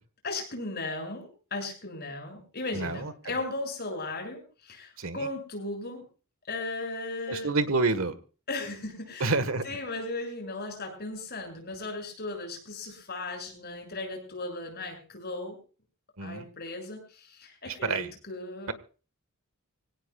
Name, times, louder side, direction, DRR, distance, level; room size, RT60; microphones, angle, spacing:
voice 1, 0.2-6.0 6.5-7.5 8.5-9.4 9.6-15.6 16.2-18.7, left 2 dB, 50° left, 2 dB, 7.3 m, -36 dB
voice 2, 2.7-3.1 5.0-5.3 7.3-8.1 9.2-9.6 16.2-16.5 17.7-18.1 18.7-18.8, right 3 dB, 65° right, 12 dB, 1.6 m, -28 dB
25.0 x 17.5 x 2.4 m, 0.37 s
head